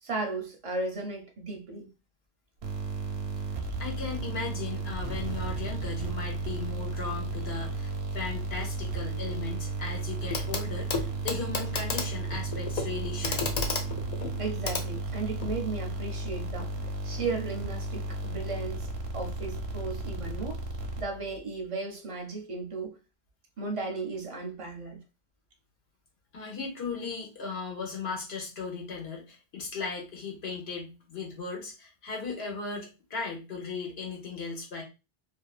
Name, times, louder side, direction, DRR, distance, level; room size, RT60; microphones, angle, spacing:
voice 1, 0.0-1.9 14.4-16.7 17.0-20.6 21.0-22.9 23.6-25.0, right 3 dB, 40° right, 0.5 m, -35 dB
sound 1, 2.6-21.4, right 3 dB, 90° right, 0.9 m, -34 dB
voice 2, 3.8-13.5 26.3-34.8, left 4 dB, 75° left, 1.2 m, -37 dB
Clock, 10.3-10.6 10.9-15.6 16.8-16.9, left 4 dB, 55° left, 0.5 m, -33 dB
2.5 x 2.4 x 2.3 m
omnidirectional pair, 1.0 m